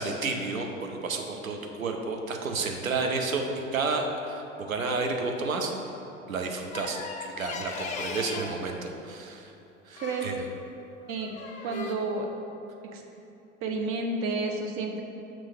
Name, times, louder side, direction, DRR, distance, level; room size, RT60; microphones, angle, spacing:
voice 1, 0.0-5.7 6.3-9.5 9.9-10.5, right 3 dB, 85° right, 3 dB, 0.7 m, -31 dB
sound 1, 6.7-8.6 10.0-10.4 11.0-11.9, left 4 dB, 20° left, 0.4 m, -38 dB
voice 2, 10.0-10.3 11.1-11.3 11.6-12.3 12.9-13.0 13.6-15.0, right 3 dB, 35° right, 3 dB, 0.7 m, -30 dB
6.0 x 3.1 x 5.4 m, 2.8 s
figure-of-eight pair, 85°, 40 cm